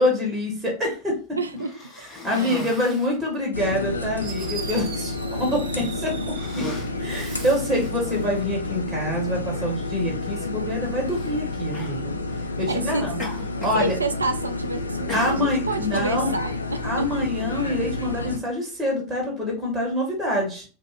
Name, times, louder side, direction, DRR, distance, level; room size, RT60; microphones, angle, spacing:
voice 1, 0.0-1.4 2.2-6.7 7.0-12.2 12.6-13.2 13.6-13.9 15.1-16.3 16.8-20.6, left 1 dB, 15° right, -2 dB, 1.2 m, -26 dB
voice 2, 1.4-1.8 2.3-2.6 12.7-13.1 13.7-17.3 17.8-17.9, right 2 dB, 80° right, 8 dB, 0.3 m, -29 dB
Cough, 1.5-3.2 3.9-4.0 4.4-4.9 5.6-5.9 6.3-8.2 9.2-9.3 11.1-11.3 11.7-12.0 13.2-13.9 14.1-14.6 15.1-15.8, left 1 dB, 30° left, 1.0 m, -37 dB
sound 1, 3.5-18.4, left 2 dB, 80° left, 0.3 m, -30 dB
Fireworks, 3.8-3.9 4.2-6.6 7.0-7.8, right 7 dB, 40° right, 0.6 m, -40 dB
2.4 x 2.3 x 3.1 m, 0.35 s
figure-of-eight pair, 80°, 0 cm